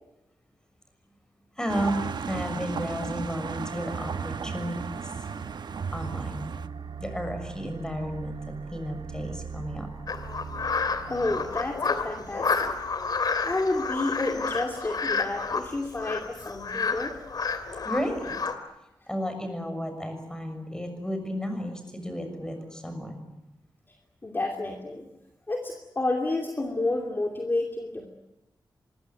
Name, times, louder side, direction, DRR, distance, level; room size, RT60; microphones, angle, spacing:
voice 1, 1.6-5.1 5.9-6.6 7.0-9.9 17.8-18.4 19.1-23.2, equal, 10° left, 6 dB, 6.6 m, -33 dB
sound 1, 1.7-6.7, right 6 dB, 65° right, 1.0 m, -35 dB
sound 2, 3.4-14.4, right 6 dB, 90° right, 2.2 m, -42 dB
sound 3, 10.1-18.5, left 4 dB, 55° left, 2.8 m, -30 dB
voice 2, 11.1-12.8 13.4-17.2 23.9-24.0 24.2-25.1 25.5-28.1, left 2 dB, 25° left, 2 dB, 2.8 m, -30 dB
25.5 x 22.0 x 9.3 m, 0.92 s
wide cardioid pair, 130°, 8 cm